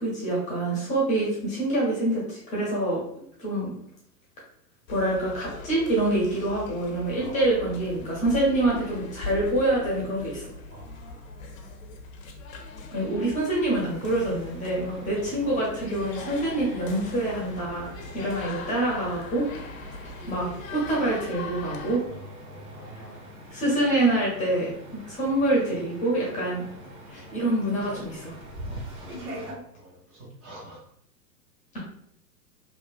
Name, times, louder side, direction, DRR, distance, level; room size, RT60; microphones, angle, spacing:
voice 1, 0.0-3.0 3.4-3.7 4.9-10.5 12.9-17.9 18.1-19.4 20.3-22.0 23.5-26.6 27.1-28.4, right 1 dB, 15° left, -4 dB, 0.6 m, -26 dB
sound 1, 4.9-22.0, left 3 dB, 55° left, 0.6 m, -41 dB
voice 2, 7.2-7.7 8.0-8.1 10.7-11.3 22.0-23.3 28.7-30.8, right 1 dB, 25° right, -4 dB, 0.6 m, -47 dB
sound 2, 13.9-29.5, equal, 70° right, 1.2 m, -43 dB
2.9 x 2.1 x 2.4 m, 0.69 s
figure-of-eight pair, 105°, 49 cm